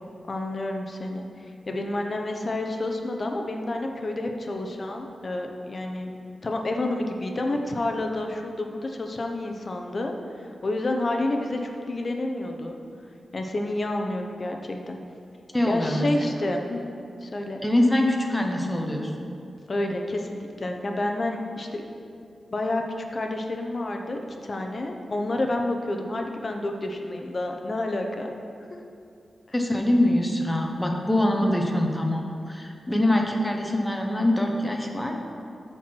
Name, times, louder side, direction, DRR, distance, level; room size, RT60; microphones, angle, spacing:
voice 1, 0.3-6.1 6.4-10.1 10.4-12.7 13.3-15.0 15.6-16.8 17.2-17.6 19.7-21.8 22.5-22.8 23.1-28.3, left 2 dB, 35° left, 3 dB, 0.8 m, -29 dB
voice 2, 15.5-16.3 17.6-19.3 29.5-35.2, left 1 dB, 10° left, 1 dB, 0.9 m, -24 dB
13.5 x 4.5 x 4.6 m, 2.5 s
wide cardioid pair, 135°, 0 cm